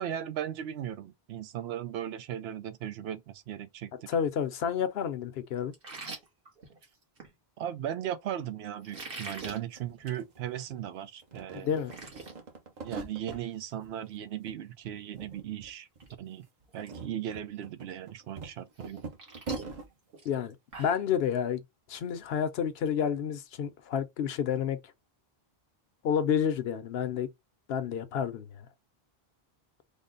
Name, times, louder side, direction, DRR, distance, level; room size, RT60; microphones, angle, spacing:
voice 1, 0.0-4.1 7.6-11.8 12.8-15.9 16.2-16.5 16.7-19.1, right 10 dB, 85° right, 0.8 m, -37 dB
voice 2, 4.1-5.7 11.5-11.9 20.2-21.6 21.9-24.8 26.0-27.3 27.7-28.7, left 8 dB, 80° left, 0.9 m, -30 dB
sound 1, 5.7-7.3 8.8-9.6 10.0-10.2 10.6-10.7 11.2-11.3 11.5-12.3 12.7-13.0 13.3-13.5 15.3-15.4 15.9-16.1 16.4-16.9 17.3-17.4 18.8-21.1, right 3 dB, 65° right, 1.4 m, -44 dB
sound 2, 9.7-10.9 11.2-13.4 13.8-14.6 14.8-15.7 16.0-16.1 16.6-19.9, right 4 dB, 50° right, 0.8 m, -42 dB
3.6 x 2.1 x 3.7 m
omnidirectional pair, 1.0 m